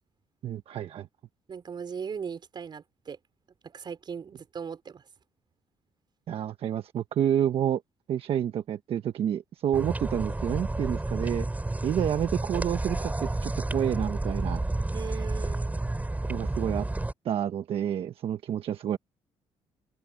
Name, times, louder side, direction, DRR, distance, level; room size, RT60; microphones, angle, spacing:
voice 1, 0.4-1.1 6.3-7.8 8.1-11.5 11.8-14.6 16.3-16.9 17.2-19.0, right 10 dB, 65° right, 1.3 m, -29 dB
voice 2, 1.5-3.2 3.6-5.0 14.9-15.8, right 6 dB, 45° right, 5.3 m, -38 dB
sound 1, 9.7-17.1, right 2 dB, 15° right, 7.8 m, -30 dB
cardioid pair, 85°, 10 cm